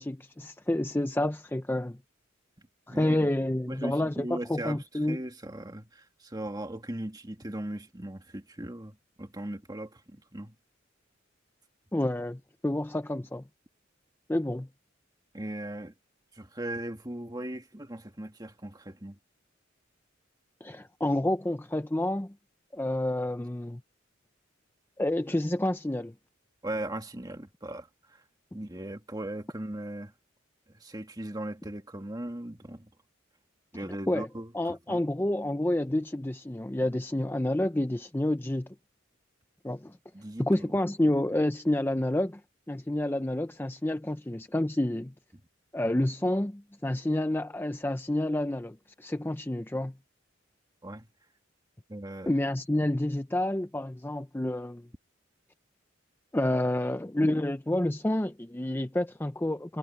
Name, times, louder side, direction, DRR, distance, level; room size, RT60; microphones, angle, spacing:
voice 1, 0.0-2.0 2.9-5.2 11.9-13.4 14.3-14.7 20.6-22.3 22.7-23.8 25.0-26.1 34.1-34.3 34.5-38.7 39.6-40.0 40.4-42.4 42.7-45.1 45.7-49.9 52.3-54.8 56.3-59.8, left 1 dB, 10° left, 0.5 m, -29 dB
voice 2, 2.6-3.3 3.7-10.5 15.3-15.9 16.3-19.2 26.6-28.2 28.5-30.1 30.7-32.9 33.7-35.0 40.1-40.7 45.3-45.4 50.8-51.1 51.9-52.3, right 1 dB, 20° right, 2.0 m, -38 dB
head